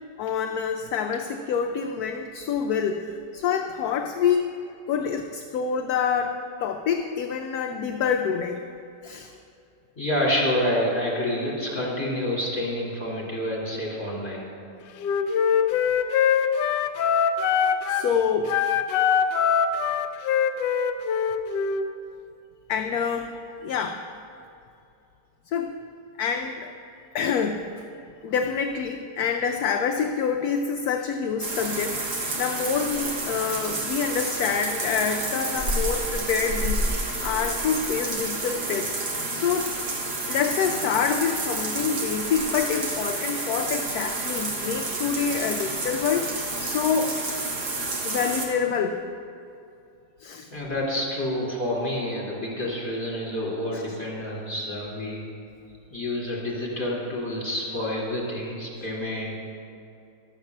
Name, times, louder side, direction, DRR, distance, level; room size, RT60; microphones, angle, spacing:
voice 1, 0.2-4.5 4.9-8.6 9.0-9.3 17.9-18.6 22.7-24.1 25.5-25.7 26.2-26.7 27.1-27.7 28.2-38.9 39.3-39.7 40.3-46.3 46.6-47.2 48.0-49.0 50.2-50.5 53.7-54.0, left 6 dB, 70° left, 4 dB, 1.0 m, -27 dB
voice 2, 10.0-14.5 50.5-55.2 55.9-59.4, left 1 dB, 15° left, -6 dB, 2.6 m, -28 dB
Wind instrument woodwind instrument, 15.0-18.1 18.4-21.9, left 7 dB, 90° left, 1.2 m, -23 dB
sound 1, 31.4-48.5, right 2 dB, 70° right, 2.1 m, -30 dB
11.5 x 7.2 x 6.4 m, 2.6 s
omnidirectional pair, 1.8 m